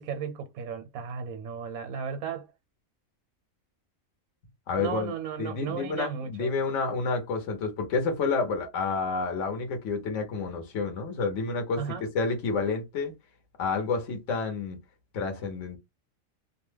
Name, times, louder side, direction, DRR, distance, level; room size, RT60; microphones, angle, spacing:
voice 1, 0.0-2.5 4.8-6.5 11.8-12.1, right 7 dB, 85° right, 1.0 m, -35 dB
voice 2, 4.7-5.1 5.4-11.8 12.1-13.1 13.6-14.8 15.1-15.8, left 4 dB, 65° left, 1.1 m, -29 dB
2.7 x 2.1 x 3.2 m
omnidirectional pair, 1.5 m